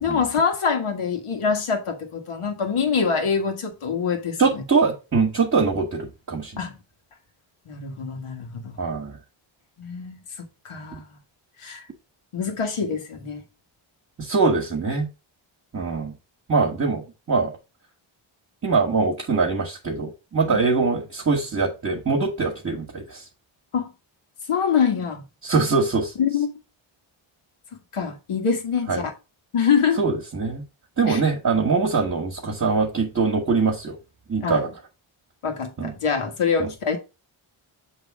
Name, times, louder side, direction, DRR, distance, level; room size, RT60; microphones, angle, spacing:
voice 1, 0.0-4.6 6.6-6.7 7.7-8.8 9.8-10.2 10.6-11.0 11.6-11.8 12.3-13.4 20.5-20.6 23.7-23.9 24.5-25.2 26.2-26.6 27.9-29.1 29.5-30.0 31.1-31.2 34.4-34.6 35.4-37.0, left 6 dB, 85° left, 1.7 m, -25 dB
voice 2, 4.4-6.6 8.8-9.2 14.2-15.1 15.7-16.1 16.5-17.5 18.6-23.3 25.4-26.1 28.9-29.0 30.0-30.6 31.0-33.9 34.3-34.7 35.8-35.9 36.6-36.7, right 4 dB, 35° right, 1.5 m, -23 dB
7.4 x 3.3 x 4.7 m
wide cardioid pair, 85°, 49 cm